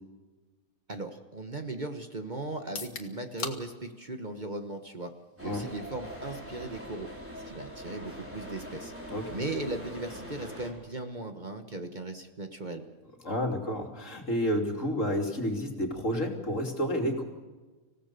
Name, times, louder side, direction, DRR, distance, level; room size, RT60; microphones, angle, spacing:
voice 1, 0.9-5.1 5.4-7.1 7.4-8.9 9.3-12.8, right 2 dB, 35° right, 6 dB, 1.3 m, -37 dB
sound 1, 2.6-16.4, left 4 dB, 90° left, 2.3 m, -50 dB
sound 2, 5.4-10.7, equal, 10° right, 4.7 m, -43 dB
voice 2, 13.2-17.2, equal, 60° left, 2 dB, 3.2 m, -30 dB
26.0 x 17.0 x 6.8 m, 1.3 s
omnidirectional pair, 1.5 m